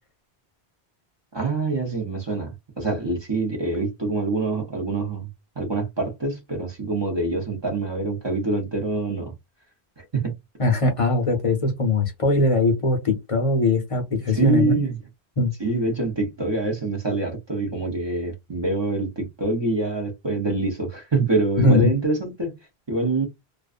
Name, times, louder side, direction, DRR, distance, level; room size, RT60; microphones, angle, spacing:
voice 1, 1.3-5.3 5.6-9.3 10.0-10.3 14.3-15.0 15.6-22.6 22.9-23.3, right 3 dB, 30° right, 0.7 m, -25 dB
voice 2, 10.6-14.8 15.4-15.5 21.6-21.9, left 2 dB, 40° left, 0.6 m, -21 dB
2.4 x 2.3 x 2.4 m
omnidirectional pair, 1.1 m